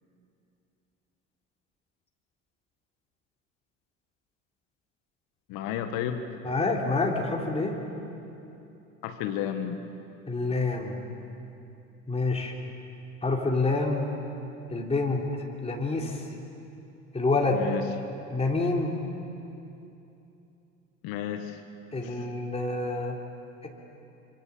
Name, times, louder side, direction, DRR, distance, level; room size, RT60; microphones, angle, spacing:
voice 1, 5.5-6.4 9.0-9.9 17.5-17.9 21.0-21.6 22.0-22.3, left 9 dB, 60° left, 7 dB, 1.7 m, -32 dB
voice 2, 6.4-7.8 10.3-11.0 12.1-12.5 13.2-14.1 14.7-15.2 15.6-16.2 17.1-17.7 18.3-19.0 21.9-23.2 23.6-23.7, left 3 dB, 15° left, -1 dB, 3.5 m, -27 dB
26.0 x 25.5 x 7.2 m, 2.9 s
hypercardioid pair, 65°, 39 cm